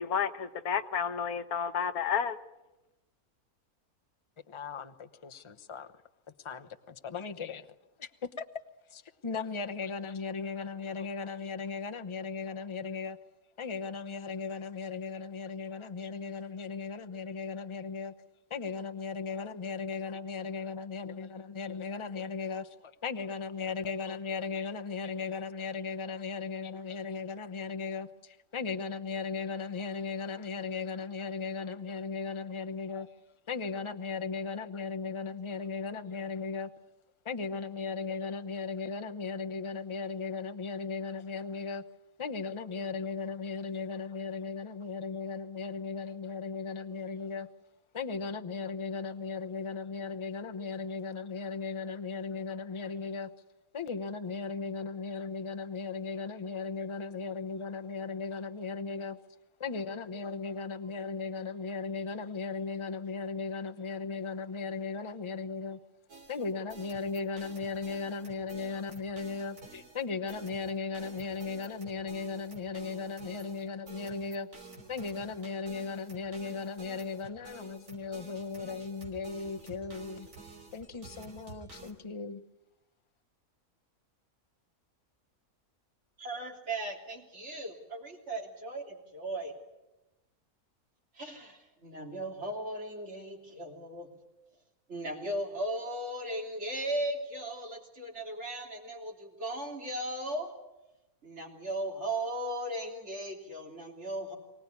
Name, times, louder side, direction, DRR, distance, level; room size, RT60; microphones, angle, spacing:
voice 1, 0.0-2.4, left 7 dB, 80° left, 1.5 m, -31 dB
voice 2, 4.5-5.9 6.4-7.7 8.0-8.1 8.4-8.6 8.9-13.2 13.6-18.1 18.5-33.1 33.5-36.7 37.2-41.8 42.2-47.5 47.9-53.3 53.7-59.2 59.6-65.8 66.3-74.5 74.9-80.3 80.7-82.4, left 4 dB, 25° left, 0.8 m, -37 dB
sound 1, 66.1-81.9, right 2 dB, 85° right, 4.2 m, -51 dB
voice 3, 86.2-89.5 91.1-94.1 94.9-100.5 101.2-104.4, right 1 dB, 50° right, 3.6 m, -37 dB
24.0 x 18.5 x 9.7 m
omnidirectional pair, 1.5 m